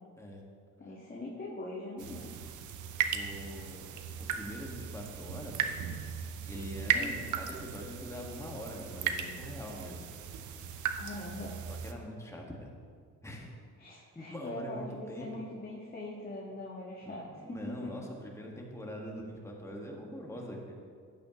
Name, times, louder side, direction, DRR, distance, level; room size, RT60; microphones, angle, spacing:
voice 1, 0.8-2.4 6.9-7.3 11.0-11.6 13.8-17.9, left 2 dB, 30° left, -6 dB, 1.8 m, -42 dB
sound 1, 2.0-11.9, right 7 dB, 75° right, 0.8 m, -36 dB
voice 2, 3.1-5.7 6.4-10.0 10.5-10.7 11.0-11.2 11.7-12.7 13.2-13.5 14.1-15.4 17.0-20.8, equal, 10° left, -1 dB, 1.8 m, -43 dB
12.0 x 8.6 x 3.1 m, 2.2 s
cardioid pair, 90°, 30 cm